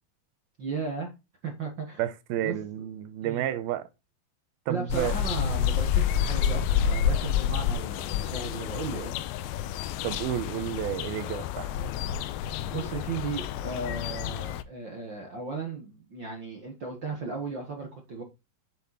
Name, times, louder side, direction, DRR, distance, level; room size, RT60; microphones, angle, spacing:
voice 1, 0.6-1.1 1.4-2.0 2.4-2.5 3.2-3.4 4.7-9.1 12.3-18.2, right 4 dB, 50° right, 1.4 m, -36 dB
voice 2, 2.0-3.9 4.7-5.1 10.0-11.7, right 11 dB, 90° right, 2.7 m, -31 dB
sound 1, 4.9-14.6, left 8 dB, 80° left, 2.4 m, -29 dB
7.8 x 7.0 x 4.2 m
omnidirectional pair, 4.4 m